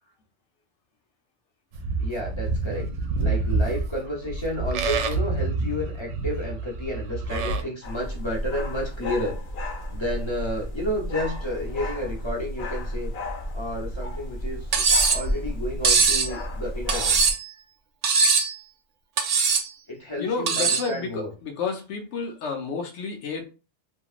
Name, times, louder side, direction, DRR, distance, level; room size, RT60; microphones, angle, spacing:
Livestock farm animals working animals, 1.7-7.6, right 3 dB, 80° right, 0.9 m, -27 dB
voice 1, 2.0-2.9 3.2-9.4 9.9-13.1 13.5-14.8 15.1-17.2 19.9-21.3, left 1 dB, 25° left, -2 dB, 0.9 m, -31 dB
sound 1, 7.8-17.3, equal, 60° left, 1.2 m, -32 dB
Cutlery silverware, 14.7-15.2 15.8-16.3 16.9-17.5 18.0-18.5 19.2-19.7 20.5-20.9, right 4 dB, 65° right, 0.4 m, -21 dB
voice 2, 20.2-23.4, left 4 dB, 80° left, 4 dB, 1.0 m, -30 dB
2.9 x 2.7 x 2.4 m, 0.32 s
omnidirectional pair, 1.2 m